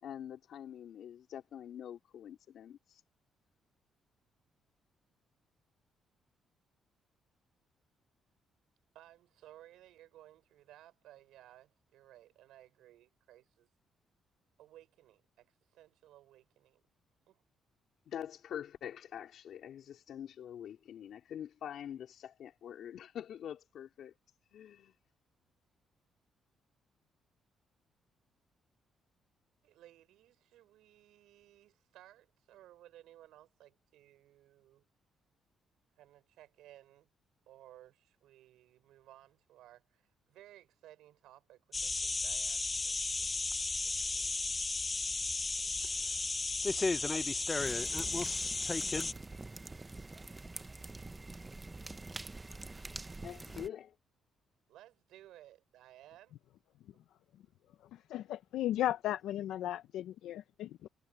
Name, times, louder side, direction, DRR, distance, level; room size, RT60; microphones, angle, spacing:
voice 1, 0.0-3.0 18.1-24.2 24.5-24.9 53.2-54.0, left 9 dB, 70° left, 4.2 m, -45 dB
voice 2, 8.9-13.7 14.6-16.8 17.3-17.4 29.6-34.8 36.0-37.1 37.5-43.3 43.8-44.4 54.7-56.3, right 13 dB, 85° right, 6.2 m, -59 dB
sound 1, 41.7-49.1, left 3 dB, 25° left, 0.7 m, -34 dB
sound 2, 47.6-53.7, right 2 dB, 20° right, 0.9 m, -46 dB
voice 3, 57.9-60.9, left 13 dB, 85° left, 0.6 m, -36 dB
cardioid pair, 90°, 0 cm